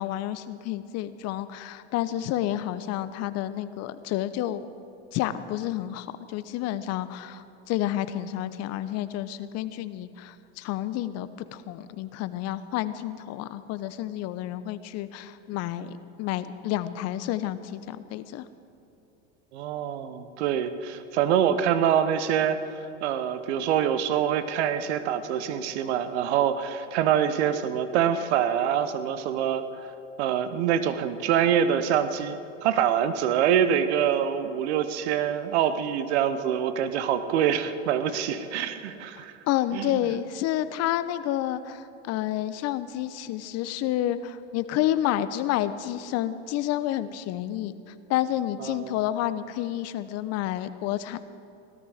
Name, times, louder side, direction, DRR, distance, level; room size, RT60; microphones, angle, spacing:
voice 1, 0.0-4.7 5.1-18.4 39.2-47.7 48.1-51.2, left 13 dB, 45° left, 13 dB, 0.9 m, -30 dB
voice 2, 19.5-22.6 23.0-29.9 30.2-39.3 39.7-40.0 48.6-48.9, right 9 dB, 70° right, 11 dB, 1.1 m, -25 dB
17.5 x 13.0 x 5.0 m, 2.9 s
hypercardioid pair, 95°, 35 cm